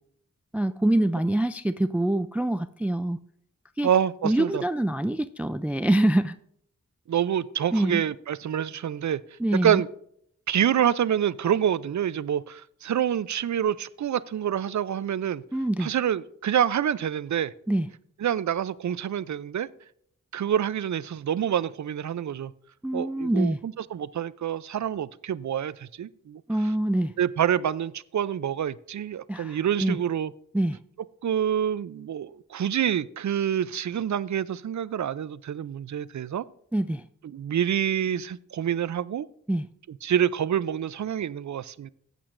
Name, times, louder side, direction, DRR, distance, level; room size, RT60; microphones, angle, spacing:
voice 1, 0.5-3.2 3.8-3.9 4.2-6.4 7.7-8.0 9.4-9.8 15.5-15.9 17.7-17.9 22.8-23.6 26.5-27.1 29.3-30.0 30.5-30.8 36.7-37.0 39.5-39.6, right 1 dB, 5° right, 0.3 m, -25 dB
voice 2, 3.8-4.6 7.1-9.2 9.5-9.9 10.5-15.4 15.8-17.5 18.2-19.7 20.3-22.5 22.9-26.4 27.2-30.3 31.2-36.4 37.2-39.3 39.9-41.9, right 9 dB, 65° right, 0.5 m, -27 dB
14.5 x 8.3 x 2.5 m
cardioid pair, 45°, 32 cm